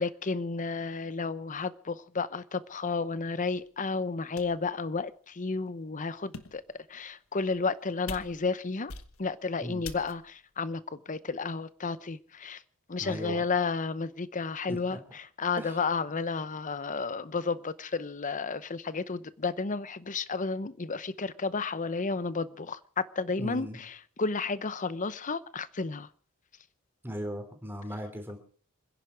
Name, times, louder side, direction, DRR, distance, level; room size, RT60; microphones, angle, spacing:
voice 1, 0.0-6.6 6.9-8.9 9.2-12.6 12.9-26.1, left 4 dB, 35° left, 0.8 m, -32 dB
sound 1, 3.6-3.7 4.4-4.7 5.4-5.5 6.1-6.7 7.4-7.8 8.1-8.6 8.9-9.4 9.8-10.4, left 4 dB, 75° left, 1.3 m, -44 dB
voice 2, 13.0-13.4 14.7-15.0 15.6-15.8 23.4-23.8 27.0-28.4, equal, 10° right, 3.4 m, -38 dB
27.0 x 10.5 x 4.8 m
head